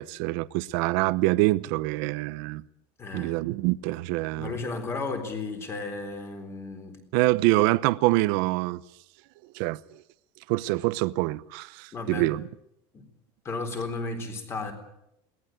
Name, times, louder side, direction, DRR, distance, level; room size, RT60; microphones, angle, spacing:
voice 1, 0.0-2.6 3.1-4.5 7.1-8.8 9.5-9.8 10.5-12.4, right 20 dB, 60° right, 0.8 m, -25 dB
voice 2, 3.0-3.3 4.4-7.0 11.9-12.3 12.9-13.0 13.4-14.7, left 3 dB, 20° left, 3.9 m, -34 dB
22.0 x 18.5 x 9.2 m
cardioid pair, 175°, 13 cm